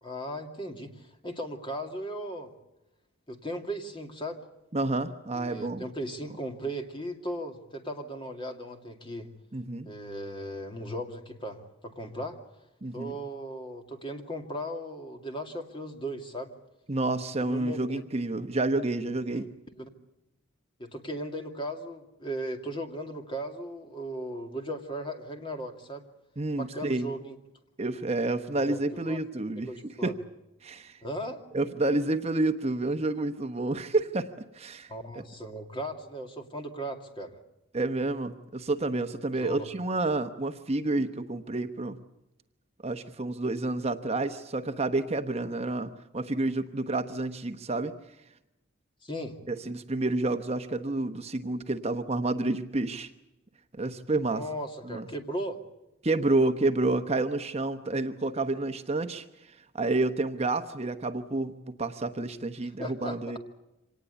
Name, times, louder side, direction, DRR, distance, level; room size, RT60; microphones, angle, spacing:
voice 1, 0.0-2.5 3.3-4.4 5.3-9.3 9.8-12.4 12.9-16.5 17.4-18.0 19.3-19.5 19.8-19.9 20.8-26.0 26.6-27.4 28.5-29.2 29.6-30.1 31.0-31.4 34.9-37.4 39.4-39.6 49.0-49.4 54.3-55.6 62.8-63.2, equal, 25° left, 4 dB, 2.4 m, -37 dB
voice 2, 4.7-5.9 9.5-9.9 12.8-13.1 16.9-19.5 26.4-27.1 27.8-29.7 30.0-30.1 30.6-31.0 31.5-35.2 37.7-42.0 42.8-47.9 49.5-53.1 53.7-54.4 54.8-55.1 56.0-63.4, right 2 dB, 30° right, 8 dB, 0.9 m, -29 dB
26.0 x 19.0 x 8.2 m, 0.94 s
head